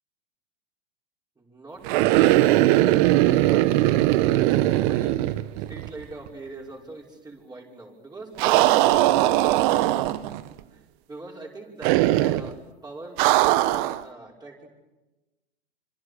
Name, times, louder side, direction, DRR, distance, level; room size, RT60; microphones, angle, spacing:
voice 1, 1.4-5.4 5.7-10.2 10.7-10.8 11.1-14.7, right 2 dB, 10° right, -1 dB, 5.6 m, -42 dB
sound 1, 1.8-6.0 6.3-6.4 8.4-10.4 11.8-12.5 13.2-14.0, right 15 dB, 50° right, 1.3 m, -20 dB
27.5 x 26.5 x 6.8 m, 1.1 s
hypercardioid pair, 100°, 32 cm